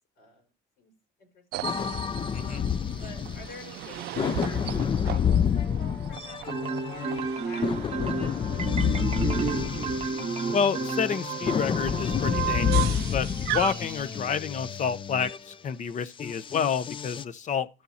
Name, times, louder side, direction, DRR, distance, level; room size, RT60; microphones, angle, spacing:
voice 1, 0.2-0.5 0.8-0.9 1.2-1.7 2.4-2.7 3.0-9.0, left 3 dB, 75° left, 4.4 m, -47 dB
sound 1, 1.5-14.2, right 16 dB, 75° right, 0.4 m, -37 dB
sound 2, 1.6-3.8 4.2-15.4 16.2-17.2, left 8 dB, 30° left, 0.4 m, -29 dB
Marimba xylophone, 6.5-11.7, right 5 dB, 35° right, 0.9 m, -31 dB
voice 2, 10.5-17.7, left 6 dB, 45° left, 0.9 m, -29 dB
12.5 x 6.8 x 4.2 m
cardioid pair, 110°, 17 cm